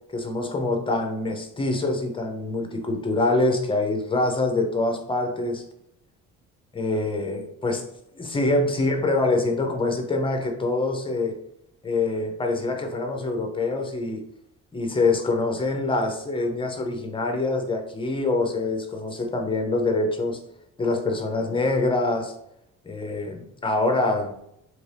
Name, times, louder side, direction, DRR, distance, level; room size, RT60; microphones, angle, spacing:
voice 1, 0.1-5.6 6.7-7.9 8.2-11.4 11.8-14.2 14.7-20.4 20.8-22.3 22.8-24.4, left 2 dB, 15° left, 4 dB, 0.4 m, -25 dB
2.9 x 2.6 x 3.2 m, 0.76 s
cardioid pair, 130°, 35 cm